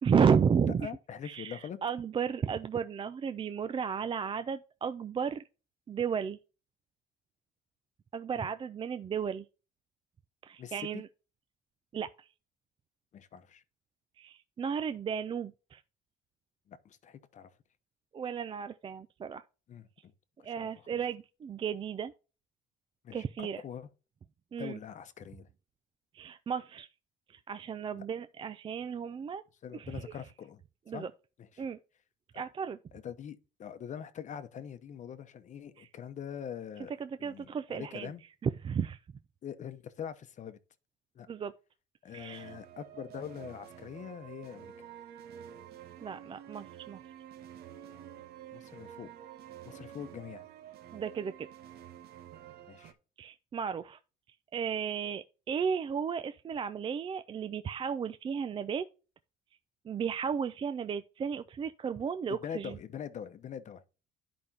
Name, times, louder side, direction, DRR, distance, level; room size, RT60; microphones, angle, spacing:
voice 1, 0.0-0.9 1.2-5.4 5.9-6.4 8.1-9.4 10.5-11.1 11.9-12.3 14.2-15.8 18.1-19.4 20.4-22.1 23.1-23.6 24.5-24.8 26.1-26.9 27.3-29.4 29.7-29.9 30.9-31.1 31.6-31.8 32.3-32.8 35.8-35.9 37.0-38.1 38.4-39.0 41.3-41.5 42.1-42.5 46.0-47.0 50.9-51.5 53.2-54.0 54.5-58.8 59.9-62.8, right 7 dB, 30° right, 0.4 m, -33 dB
voice 2, 0.8-1.8 8.3-8.5 10.6-11.0 13.1-13.6 16.7-17.5 19.7-20.1 20.4-20.8 23.0-23.9 24.6-25.5 27.9-28.0 29.6-30.6 30.9-31.1 31.4-31.6 32.3-32.4 32.9-36.9 37.2-38.2 39.4-40.6 41.1-41.3 42.0-44.9 48.5-49.1 49.6-50.4 52.7-53.0 62.3-63.8, left 8 dB, 45° left, 0.9 m, -43 dB
sound 1, 42.2-52.9, right 10 dB, 70° right, 1.0 m, -49 dB
11.0 x 5.1 x 2.8 m
cardioid pair, 110°, 17 cm